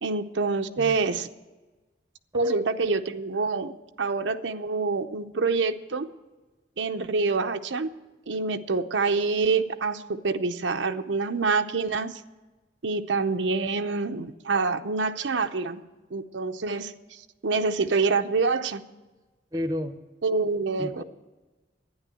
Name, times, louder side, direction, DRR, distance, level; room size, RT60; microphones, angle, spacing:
voice 1, 0.0-1.3 2.3-6.1 6.8-7.9 8.3-12.2 12.8-15.8 16.1-18.8 20.2-21.0, right 4 dB, 85° right, 7 dB, 0.7 m, -26 dB
voice 2, 19.5-20.0 20.8-21.0, left 1 dB, 20° right, 10 dB, 0.7 m, -31 dB
11.5 x 9.9 x 7.6 m, 1.2 s
head